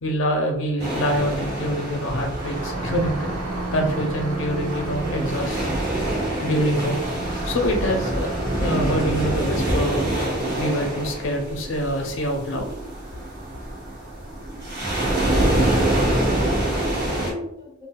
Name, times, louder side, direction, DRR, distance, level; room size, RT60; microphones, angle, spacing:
voice 1, 0.0-3.3 3.7-5.8 6.4-7.0 7.5-8.3 8.6-10.1 10.6-12.7, equal, 60° left, 2 dB, 0.6 m, -25 dB
sound 1, 0.8-17.3, right 1 dB, 50° right, 1.1 m, -26 dB
sound 2, 2.4-8.9, right 2 dB, 80° right, 0.4 m, -33 dB
voice 2, 15.8-17.9, left 1 dB, 15° right, -6 dB, 1.0 m, -37 dB
4.1 x 2.2 x 2.2 m, 0.80 s
head